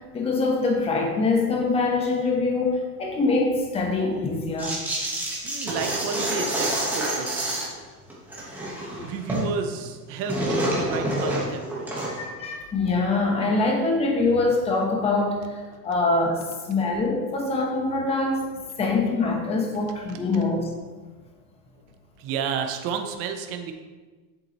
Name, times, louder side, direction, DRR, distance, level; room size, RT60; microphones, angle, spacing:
voice 1, 0.0-4.7 12.1-16.4 16.7-18.5 18.8-20.7, left 3 dB, 15° left, 0 dB, 1.0 m, -24 dB
sound 1, 4.6-7.8 8.1-9.5 9.8-12.3, right 1 dB, 5° right, 1.2 m, -28 dB
voice 2, 5.4-7.7 9.0-12.1 22.2-23.7, right 6 dB, 30° right, 5 dB, 0.7 m, -31 dB
8.0 x 7.5 x 3.0 m, 1.3 s
supercardioid pair, 160°, 46 cm